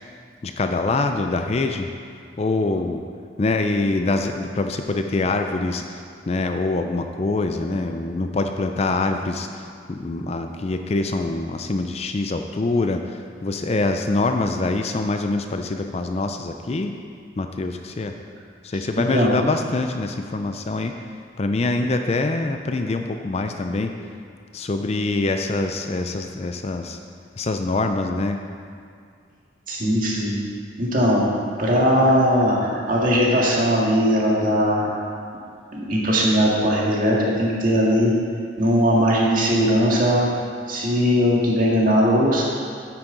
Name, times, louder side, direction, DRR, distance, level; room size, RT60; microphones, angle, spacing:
voice 1, 0.4-1.9 2.4-3.0 3.4-17.0 17.4-18.1 18.6-21.0 21.4-23.9 24.5-27.0 27.4-28.4, left 2 dB, 35° left, 6 dB, 0.4 m, -24 dB
voice 2, 19.0-19.3 29.7-30.3 30.8-31.2 31.6-34.9 35.7-38.2 38.6-40.3 40.7-42.4, equal, 45° right, -4 dB, 1.8 m, -19 dB
9.4 x 9.2 x 3.9 m, 2.2 s
head